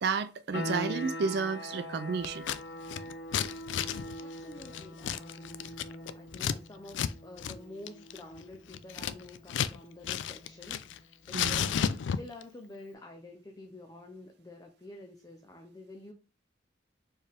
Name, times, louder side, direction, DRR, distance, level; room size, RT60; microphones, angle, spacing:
voice 1, 0.0-2.5 11.3-11.7, right 5 dB, 60° right, 0.4 m, -32 dB
sound 1, 0.5-11.0, left 1 dB, 70° left, 0.8 m, -43 dB
Scissors, 2.2-2.6 2.9-6.6 6.9-7.1 7.4-7.6 7.9-9.8 10.0-11.0 11.3-12.4, left 8 dB, 90° left, 0.3 m, -33 dB
voice 2, 4.2-11.8 12.1-16.1, left 2 dB, 20° left, 0.5 m, -49 dB
4.5 x 3.3 x 3.5 m
head